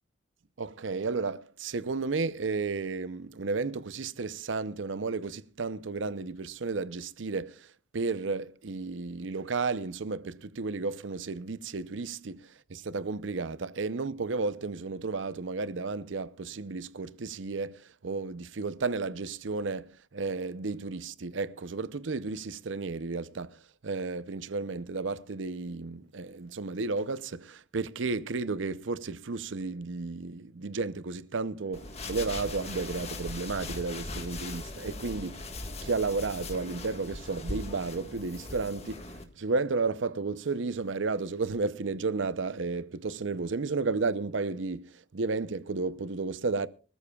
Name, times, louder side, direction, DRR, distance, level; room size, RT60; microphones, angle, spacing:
voice 1, 0.6-7.7 7.9-23.6 23.8-35.5 35.8-39.1 39.4-46.7, right 4 dB, 80° right, 0.7 m, -33 dB
sound 1, 31.7-39.2, left 2 dB, 35° left, 1.6 m, -39 dB
25.0 x 13.5 x 2.4 m
head